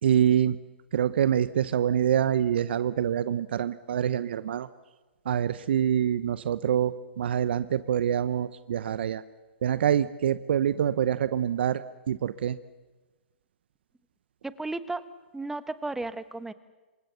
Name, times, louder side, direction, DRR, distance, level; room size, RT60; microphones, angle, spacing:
voice 1, 0.0-0.6 0.9-4.7 5.2-9.2 9.6-12.6, right 9 dB, 60° right, 15 dB, 0.8 m, -25 dB
voice 2, 14.4-15.0 15.3-16.5, right 2 dB, 5° right, 13 dB, 1.1 m, -34 dB
27.0 x 23.5 x 6.9 m, 1.2 s
hypercardioid pair, 130°, 6 cm